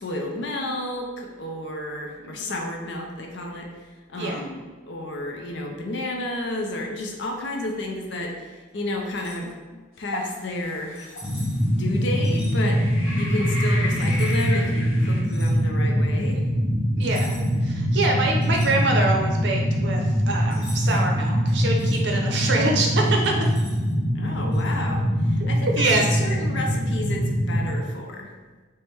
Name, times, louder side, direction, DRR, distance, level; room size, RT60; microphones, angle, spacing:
voice 1, 0.0-3.7 4.1-9.6 10.0-11.2 11.7-16.4 24.1-28.3, left 1 dB, 60° left, 1 dB, 0.6 m, -31 dB
sound 1, 9.0-9.5 10.9-11.7 12.2-12.6 13.9-14.5 15.2-15.6 17.0-17.6 18.0-19.2 20.5-21.0 21.5-22.0 23.0-23.9 24.5-24.7, equal, 25° left, 1.3 m, -44 dB
sound 2, 10.1-10.4 11.1-11.2 12.5-15.2, left 1 dB, 85° left, 0.9 m, -33 dB
sound 3, 11.2-27.7, equal, ahead, 0.6 m, -23 dB
voice 2, 17.0-17.4 17.6-23.5 25.8-26.1, right 2 dB, 60° right, 1 dB, 0.6 m, -25 dB
4.4 x 2.1 x 3.3 m, 1.4 s
head